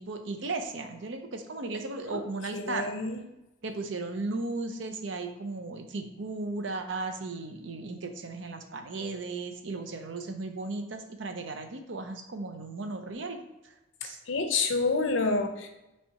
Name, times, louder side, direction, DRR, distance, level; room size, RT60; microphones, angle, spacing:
voice 1, 0.0-2.9 3.6-13.4 14.0-14.2, right 3 dB, 70° right, 6 dB, 0.6 m, -36 dB
voice 2, 2.5-3.2 14.3-15.7, left 3 dB, 80° left, 5 dB, 0.7 m, -28 dB
5.5 x 3.4 x 2.8 m, 0.94 s
head